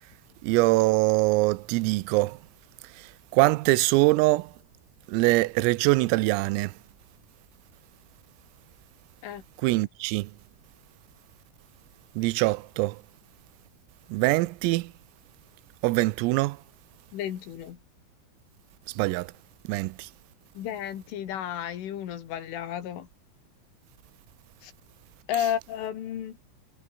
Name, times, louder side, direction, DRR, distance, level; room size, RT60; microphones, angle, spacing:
voice 1, 0.4-2.4 3.0-4.5 5.1-6.7 9.6-10.3 12.2-13.0 14.1-14.9 15.8-16.6 18.9-19.3 19.7-20.1, right 21 dB, 85° right, 3.4 m, -23 dB
voice 2, 17.1-17.8 20.5-23.1 24.6-24.7 25.3-26.4, left 10 dB, 70° left, 4.9 m, -32 dB
omnidirectional pair, 6.0 m